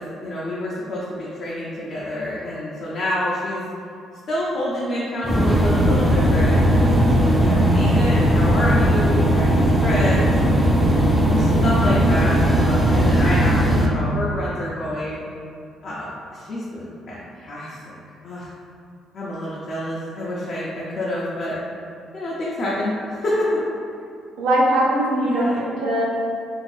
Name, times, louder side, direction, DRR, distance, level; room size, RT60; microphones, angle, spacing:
voice 1, 0.0-3.7 4.3-7.1 7.4-10.7 11.3-15.2 15.8-18.0 18.2-18.5 19.1-21.6 22.1-23.5 25.2-25.6, left 1 dB, 55° left, -7 dB, 0.5 m, -28 dB
sound 1, 5.2-13.9, equal, 5° right, 0.5 m, -17 dB
voice 2, 24.4-26.0, right 1 dB, 90° right, -5 dB, 0.6 m, -20 dB
2.6 x 2.4 x 3.2 m, 2.5 s
supercardioid pair, 75°, 0 cm